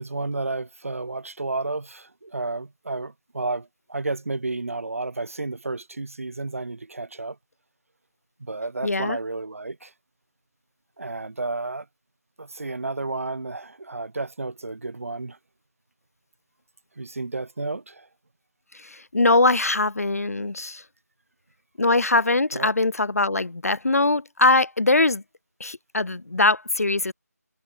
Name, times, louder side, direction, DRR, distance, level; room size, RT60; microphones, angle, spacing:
voice 1, 0.0-7.4 8.4-9.9 11.0-11.9 12.4-15.4 17.0-18.1 22.5-22.7, right 3 dB, 55° right, 1.9 m, -31 dB
voice 2, 8.8-9.2 18.7-20.8 21.8-25.2 25.6-27.1, left 2 dB, 60° left, 2.2 m, -22 dB
figure-of-eight pair, 175°, 9 cm